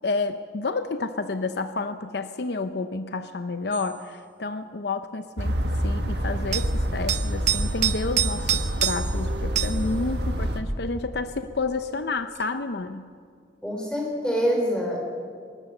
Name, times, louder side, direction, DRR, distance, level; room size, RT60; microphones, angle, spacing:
voice 1, 0.0-5.6 5.8-13.1, left 3 dB, 65° left, 10 dB, 0.7 m, -30 dB
sound 1, 3.7-3.9 6.5-6.7 7.1-9.2 9.6-9.8 12.4-12.5, right 11 dB, 40° right, 0.6 m, -26 dB
sound 2, 5.4-10.6, equal, 65° right, 1.7 m, -27 dB
voice 2, 13.6-15.0, equal, 5° left, -1 dB, 4.3 m, -25 dB
20.0 x 19.5 x 6.7 m, 2.2 s
head